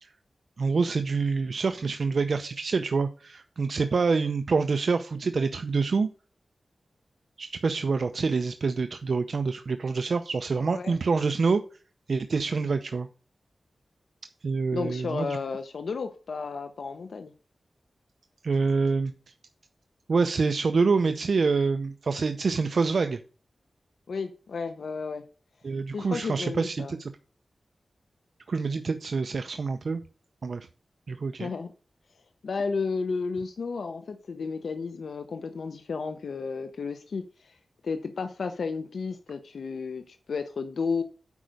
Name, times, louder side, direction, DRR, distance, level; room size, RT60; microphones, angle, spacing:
voice 1, 0.6-6.1 7.4-11.6 12.1-13.1 14.4-15.4 18.4-19.1 20.1-23.2 25.6-27.1 28.5-30.0 30.4-30.7 31.1-31.5, right 4 dB, 65° right, 0.5 m, -26 dB
voice 2, 14.7-17.3 24.1-25.2 25.9-26.9 31.4-31.7 32.4-37.6 37.8-41.0, left 4 dB, 80° left, 0.7 m, -32 dB
8.3 x 5.2 x 6.4 m
wide cardioid pair, 105°, 0 cm